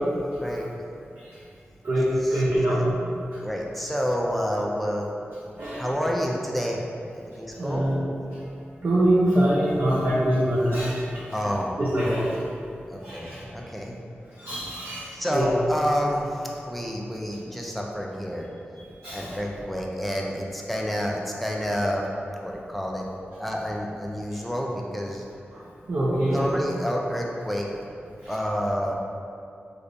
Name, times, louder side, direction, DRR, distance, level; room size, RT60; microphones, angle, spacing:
voice 1, 0.4-0.8 2.2-2.4 3.4-5.1 5.7-6.8 7.1-7.8 11.3-11.7 12.9-14.0 15.1-18.5 19.0-22.1 22.4-23.1 23.4-25.2 26.3-27.7 28.3-28.9, equal, ahead, -2 dB, 0.5 m, -29 dB
voice 2, 1.8-2.8 5.6-5.8 7.6-8.0 8.8-11.0 11.8-12.3 13.0-13.4 14.4-15.5 19.0-19.2 25.9-26.4, right 1 dB, 65° right, -9 dB, 0.6 m, -23 dB
3.2 x 2.5 x 2.6 m, 2.5 s
cardioid pair, 40°, 4 cm